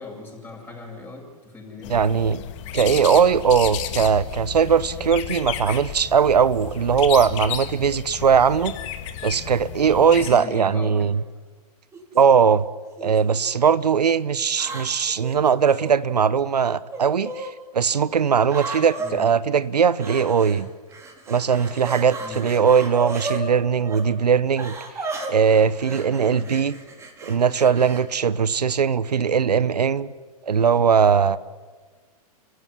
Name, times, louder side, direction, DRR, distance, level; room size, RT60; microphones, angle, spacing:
voice 1, 0.0-1.9 10.2-11.1 19.0-19.2 22.2-22.5 26.3-26.5, left 3 dB, 10° left, 0 dB, 8.0 m, -38 dB
sound 1, 1.8-10.4, left 11 dB, 50° left, 2.1 m, -33 dB
voice 2, 1.9-2.4 2.7-8.7 9.2-11.2 12.1-12.7 13.0-17.5 17.7-20.7 21.3-24.7 25.3-26.8 27.2-30.1 30.5-31.4, right 6 dB, 90° right, 16 dB, 0.9 m, -19 dB
sound 2, 11.9-12.2 13.0-13.5 14.5-15.9 16.9-17.5 18.5-19.1 20.0-20.6 20.9-23.4 23.8-24.0 24.6-28.0, right 3 dB, 15° right, 4.1 m, -34 dB
29.5 x 16.0 x 10.0 m, 1.4 s
hypercardioid pair, 120°, 20 cm